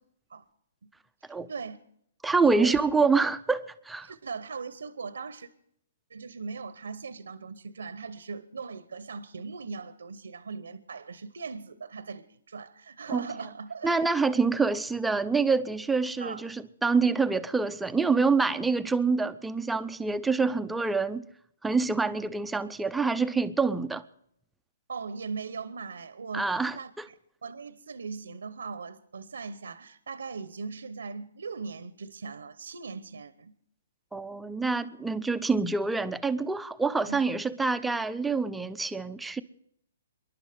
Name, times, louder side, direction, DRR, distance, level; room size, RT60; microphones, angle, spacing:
voice 1, 1.2-1.8 2.4-2.8 4.0-5.5 6.1-14.1 16.2-16.5 24.9-27.1 27.4-33.5 37.0-37.4, right 5 dB, 80° right, 0.9 m, -39 dB
voice 2, 2.2-4.1 13.1-13.3 13.8-21.3 21.6-24.0 26.3-27.1 34.1-39.4, right 4 dB, 5° right, 0.6 m, -26 dB
26.5 x 11.5 x 3.5 m
hypercardioid pair, 140°, 0 cm